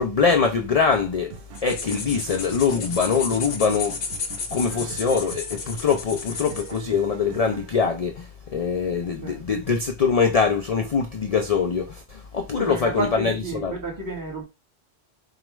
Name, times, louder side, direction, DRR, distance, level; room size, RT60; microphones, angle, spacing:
voice 1, 0.0-1.3 1.6-4.0 4.5-13.8, left 5 dB, 50° left, 0.5 m, -23 dB
sound 1, 1.3-7.7, right 8 dB, 75° right, 0.8 m, -42 dB
sound 2, 1.5-6.8, left 4 dB, 85° left, 1.0 m, -33 dB
voice 2, 12.6-14.4, right 2 dB, 20° right, 1.5 m, -31 dB
4.6 x 2.4 x 3.0 m
omnidirectional pair, 1.1 m